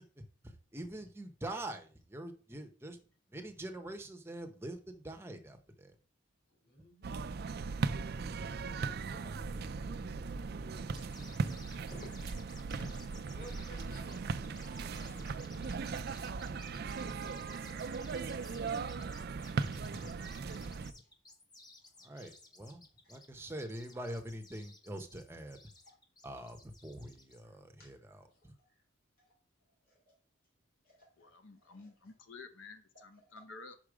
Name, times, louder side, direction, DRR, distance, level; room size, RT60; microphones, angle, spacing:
voice 1, 0.2-3.0 3.3-5.9 19.8-19.9 22.0-25.6 26.2-28.5, right 1 dB, 10° right, 5 dB, 0.7 m, -45 dB
voice 2, 6.5-7.2 8.5-12.0 12.3-17.9 21.0-21.1 21.8-22.3 23.0-23.2 25.8-26.0 27.4-28.8 29.2-29.4 29.8-30.2 30.8-31.3 31.5-32.1 32.9-33.4, equal, 45° left, 0 dB, 2.6 m, -57 dB
sound 1, 7.0-20.9, right 4 dB, 50° right, 0.4 m, -38 dB
sound 2, 10.9-27.4, left 2 dB, 20° left, 0.9 m, -57 dB
voice 3, 31.2-33.8, left 3 dB, 60° left, 9 dB, 0.7 m, -51 dB
5.6 x 4.8 x 4.9 m, 0.39 s
head